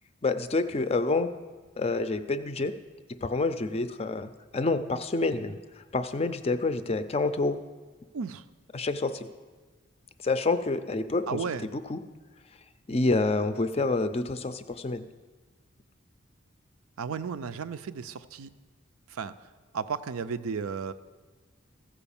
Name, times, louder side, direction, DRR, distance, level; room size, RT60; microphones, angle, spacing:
voice 1, 0.2-1.3 1.8-2.7 3.2-5.6 5.9-7.6 8.7-9.3 10.2-11.4 11.7-12.0 12.9-15.0, left 3 dB, 30° left, 11 dB, 0.4 m, -28 dB
voice 2, 11.3-11.6 17.0-18.5 19.1-19.3 19.7-20.9, right 5 dB, 85° right, 12 dB, 0.5 m, -33 dB
14.5 x 4.9 x 7.0 m, 1.4 s
head